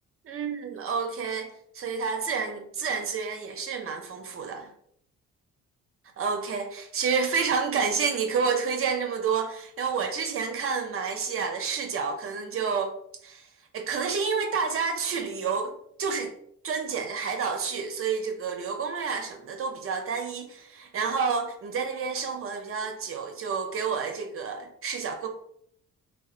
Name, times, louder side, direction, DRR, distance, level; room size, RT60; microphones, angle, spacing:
voice 1, 0.2-4.7 6.2-13.0 13.2-13.5 13.7-16.3 16.6-25.3, right 5 dB, 50° right, 0.4 m, -29 dB
2.6 x 2.2 x 2.4 m
cardioid pair, 90°, 30 cm